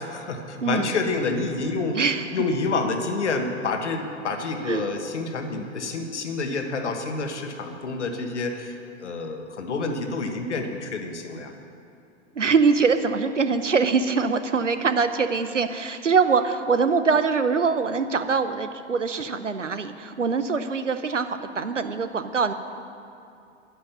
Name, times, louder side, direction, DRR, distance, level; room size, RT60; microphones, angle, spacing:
voice 1, 0.0-2.0 2.3-11.5, left 3 dB, 70° left, 5 dB, 1.5 m, -28 dB
voice 2, 0.6-0.9 1.9-2.4 4.7-4.9 12.3-22.5, right 5 dB, 85° right, 10 dB, 0.8 m, -23 dB
10.5 x 10.0 x 7.0 m, 2.6 s
figure-of-eight pair, 95°, 36 cm